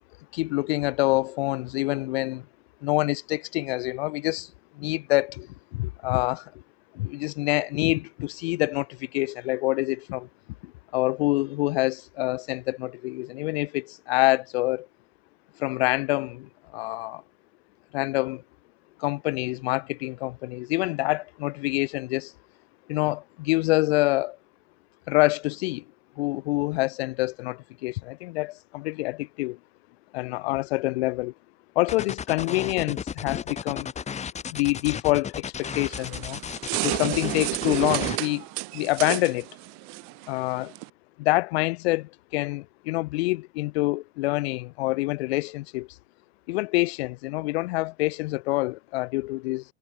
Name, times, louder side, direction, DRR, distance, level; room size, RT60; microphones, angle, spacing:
voice 1, 0.3-2.5 2.8-6.5 6.9-10.3 10.6-14.9 15.6-17.2 17.9-18.4 19.0-22.3 22.9-24.4 25.1-25.8 26.2-29.6 30.1-31.3 31.7-33.9 34.5-36.4 36.8-38.4 38.7-39.5 40.3-40.7 41.2-45.9 46.5-49.6, left 21 dB, 50° left, 6.5 m, -26 dB
sound 1, 31.9-38.2, left 7 dB, 15° left, 2.1 m, -34 dB
sound 2, 35.6-40.9, right 30 dB, 45° right, 7.8 m, -32 dB
figure-of-eight pair, 100°, 39 cm